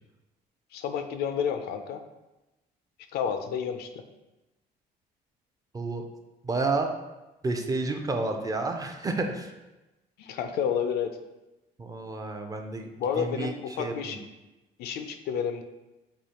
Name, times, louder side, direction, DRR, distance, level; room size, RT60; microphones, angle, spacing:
voice 1, 0.7-2.0 3.1-4.0 10.2-11.2 13.0-14.2 14.8-15.6, left 7 dB, 75° left, 8 dB, 0.4 m, -30 dB
voice 2, 5.7-6.1 6.4-7.0 7.4-9.5 11.8-12.9 13.2-14.2, right 3 dB, 20° right, 4 dB, 0.4 m, -30 dB
4.8 x 2.4 x 2.8 m, 1.0 s
cardioid pair, 110°, 17 cm